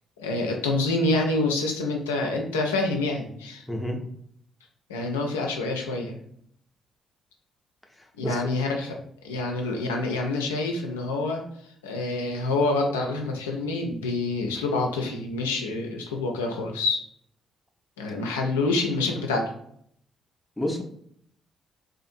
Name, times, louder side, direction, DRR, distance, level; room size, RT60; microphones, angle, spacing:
voice 1, 0.2-3.6 4.9-6.2 8.2-8.9 9.2-11.4 11.8-17.0 18.0-19.5, left 2 dB, 85° left, 1 dB, 0.4 m, -27 dB
voice 2, 3.7-4.0 8.0-8.4 20.6-20.8, left 1 dB, 10° left, 1 dB, 0.5 m, -30 dB
2.5 x 2.4 x 2.5 m, 0.67 s
hypercardioid pair, 40°, 0 cm